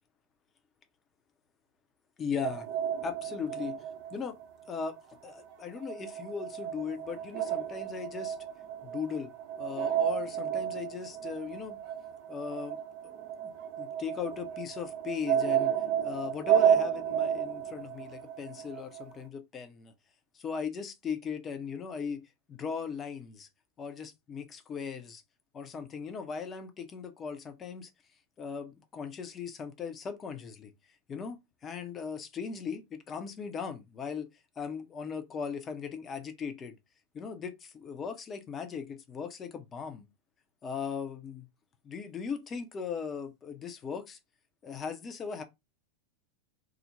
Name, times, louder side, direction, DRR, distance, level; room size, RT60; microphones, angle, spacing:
voice 1, 2.2-2.7 3.0-3.8 4.1-4.4 4.7-5.0 5.2-8.4 8.8-9.3 9.6-11.8 12.3-12.8 13.8-19.9 20.3-23.5 23.8-25.2 25.5-27.9 28.4-30.7 31.1-34.3 34.6-36.8 37.1-40.1 40.6-41.5 41.8-44.2 44.6-45.4, left 6 dB, 25° left, 0.5 m, -38 dB
sound 1, 2.4-5.0 5.2-19.1, right 9 dB, 45° right, 0.6 m, -32 dB
2.4 x 2.0 x 3.0 m
figure-of-eight pair, 90°, 0 cm